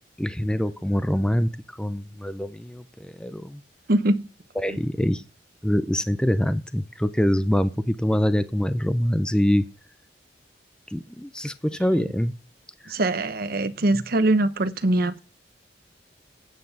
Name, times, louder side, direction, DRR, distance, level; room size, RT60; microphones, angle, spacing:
voice 1, 0.2-1.5 1.8-3.6 4.6-5.2 5.6-9.6 10.9-12.3 12.8-12.9 13.9-14.0, equal, 5° left, 0.5 m, -24 dB
voice 2, 3.9-4.3 11.9-12.0 12.9-15.2, right 2 dB, 55° right, 0.9 m, -22 dB
9.4 x 7.7 x 5.5 m
head